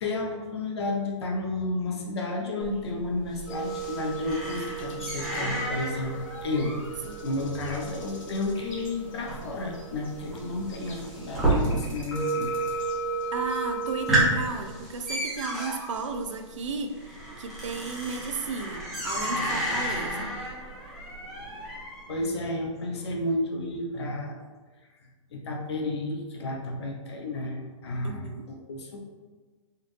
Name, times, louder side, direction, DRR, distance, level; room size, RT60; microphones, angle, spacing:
voice 1, 0.0-6.8 7.2-12.5 22.1-24.4 25.3-28.2 28.5-29.0, left 2 dB, 55° left, 1 dB, 0.8 m, -31 dB
sound 1, 2.6-12.2 12.4-13.0 13.4-13.5 13.8-22.2, right 1 dB, ahead, 0.6 m, -32 dB
sound 2, 3.5-14.2, right 4 dB, 80° left, 1.3 m, -36 dB
voice 2, 13.3-17.0 17.4-20.3 28.0-28.5, right 4 dB, 70° right, 5 dB, 0.5 m, -34 dB
4.4 x 2.4 x 3.2 m, 1.4 s
hypercardioid pair, 170°, 17 cm